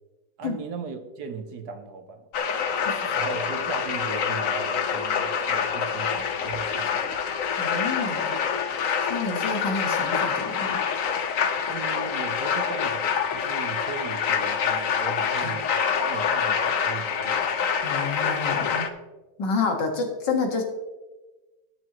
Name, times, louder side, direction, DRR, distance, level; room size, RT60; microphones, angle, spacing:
voice 1, 0.4-2.3 3.1-7.2 9.2-9.5 11.7-15.7 16.0-17.4, right 5 dB, 65° right, 8 dB, 1.4 m, -38 dB
sound 1, 2.3-18.9, left 7 dB, 55° left, 1.1 m, -26 dB
voice 2, 7.6-8.3 9.1-10.8 15.4-15.5 17.8-18.9 19.4-20.6, left 4 dB, 80° left, 3 dB, 2.4 m, -29 dB
20.0 x 7.2 x 3.0 m, 1.1 s
omnidirectional pair, 1.9 m